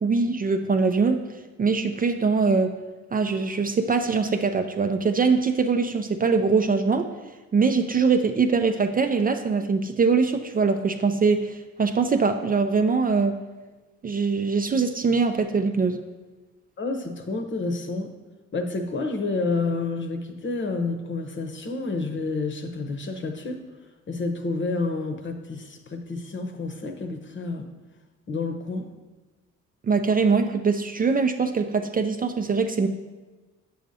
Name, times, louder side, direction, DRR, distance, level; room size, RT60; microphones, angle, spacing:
voice 1, 0.0-1.2 1.6-2.8 3.1-7.1 7.5-13.4 14.0-16.0 29.9-32.9, right 4 dB, 30° right, 6 dB, 0.4 m, -22 dB
voice 2, 16.8-18.1 18.5-23.6 24.1-27.7 28.3-28.9, left 3 dB, 40° left, 5 dB, 0.9 m, -29 dB
8.8 x 6.5 x 2.7 m, 1.2 s
cardioid pair, 90°, 30 cm